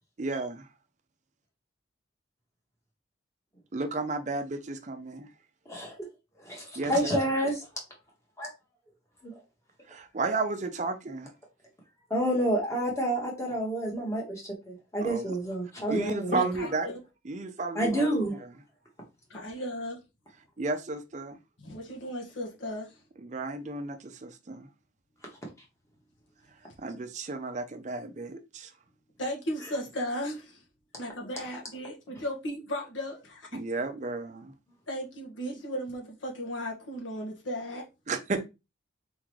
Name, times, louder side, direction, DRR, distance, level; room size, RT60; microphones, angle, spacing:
voice 1, 0.2-0.7 3.7-5.3 6.8-7.3 9.9-11.3 15.0-15.3 15.9-16.9 17.2-18.5 20.6-21.4 23.2-24.7 26.8-28.7 33.5-34.5 38.1-38.4, right 3 dB, 40° right, 0.5 m, -33 dB
voice 2, 6.4-7.6 8.4-8.5 9.2-9.3 12.1-16.5 17.7-18.4, right 1 dB, 15° left, 1.7 m, -29 dB
voice 3, 16.0-17.0 19.3-20.0 21.6-23.0 29.2-30.6 31.0-33.5 34.9-37.9, equal, 90° left, 1.6 m, -35 dB
4.4 x 3.7 x 3.1 m
head